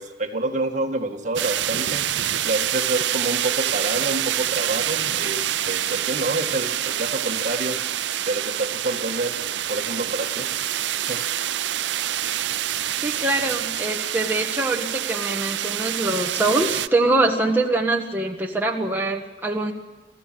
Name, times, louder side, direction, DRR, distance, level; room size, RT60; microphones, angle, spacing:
voice 1, 0.0-2.0 2.4-7.8 8.3-9.4 9.7-10.5 11.0-11.2, right 2 dB, 45° right, 4 dB, 2.1 m, -28 dB
sound 1, 1.4-16.9, right 11 dB, 90° right, 0.6 m, -26 dB
voice 2, 13.0-19.7, right 2 dB, 10° right, 0 dB, 1.5 m, -23 dB
27.5 x 15.0 x 7.7 m, 1.2 s
head